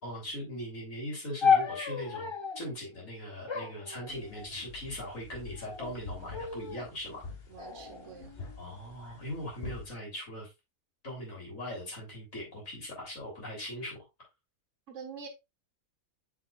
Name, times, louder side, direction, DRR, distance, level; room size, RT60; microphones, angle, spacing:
voice 1, 0.0-7.2 8.6-10.5 11.0-14.1, left 1 dB, 65° left, 3.7 m, -40 dB
sound 1, 1.4-2.7 3.5-4.7 5.5-5.9 6.3-6.9 7.6-8.6, left 6 dB, 25° left, 0.6 m, -32 dB
sound 2, 4.1-9.9, left 3 dB, 45° left, 1.5 m, -46 dB
voice 2, 7.5-8.4 14.9-15.3, right 6 dB, 60° right, 1.5 m, -46 dB
6.9 x 6.5 x 2.3 m
omnidirectional pair, 1.5 m